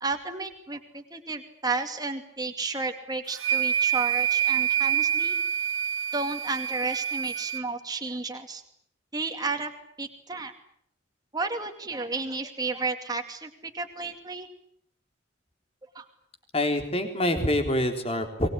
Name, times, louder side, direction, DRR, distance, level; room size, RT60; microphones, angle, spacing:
voice 1, 0.0-5.4 6.1-8.6 9.1-9.7 10.0-10.5 11.3-14.5 15.9-16.1, right 3 dB, 20° right, 5 dB, 2.4 m, -32 dB
sound 1, 3.3-7.6, right 9 dB, 85° right, 1.3 m, -26 dB
voice 2, 16.5-18.5, left 1 dB, 30° left, 6 dB, 3.8 m, -26 dB
24.0 x 21.0 x 9.9 m, 0.68 s
head